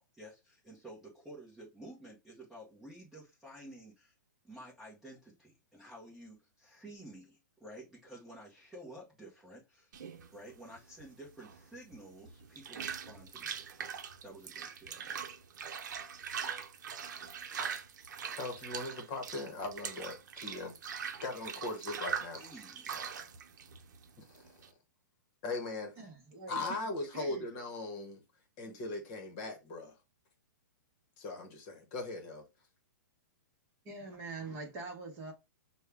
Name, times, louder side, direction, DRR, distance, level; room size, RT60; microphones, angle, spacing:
voice 1, 0.0-4.2 4.4-9.9 10.3-15.3 22.3-22.9, right 1 dB, 5° right, 0.9 m, -52 dB
sound 1, 9.9-24.7, right 7 dB, 65° right, 0.7 m, -42 dB
voice 2, 18.4-20.7 21.2-22.4 24.2-24.5 25.4-25.9 26.5-28.2 28.6-30.0 31.2-32.4, left 2 dB, 30° left, 1.1 m, -39 dB
voice 3, 26.0-27.4 28.6-28.8 29.4-29.5 33.8-35.3, right 3 dB, 25° right, 1.1 m, -44 dB
5.3 x 2.3 x 3.4 m
hypercardioid pair, 160°, 10 cm